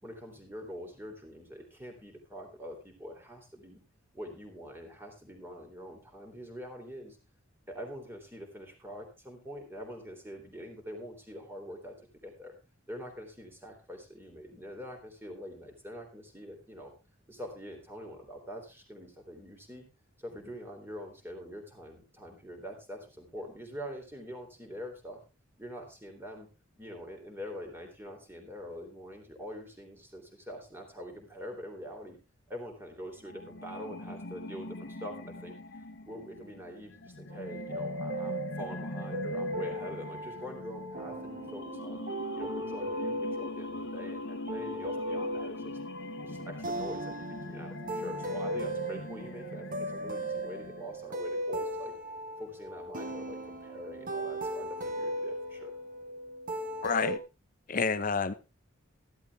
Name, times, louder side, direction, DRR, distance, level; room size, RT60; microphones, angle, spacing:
voice 1, 0.0-3.8 4.1-7.2 7.7-11.9 12.2-12.5 12.9-16.9 17.3-19.8 20.2-25.2 25.6-26.5 26.8-32.2 32.5-42.0 42.3-45.8 46.2-51.9 52.4-55.7, equal, 10° right, 3.4 m, -44 dB
sound 1, 33.2-51.1, left 2 dB, 55° left, 1.1 m, -42 dB
sound 2, 37.3-57.2, right 1 dB, 40° right, 1.3 m, -37 dB
voice 2, 56.8-57.2 57.7-58.3, left 5 dB, 40° left, 0.8 m, -29 dB
14.5 x 12.0 x 3.5 m
head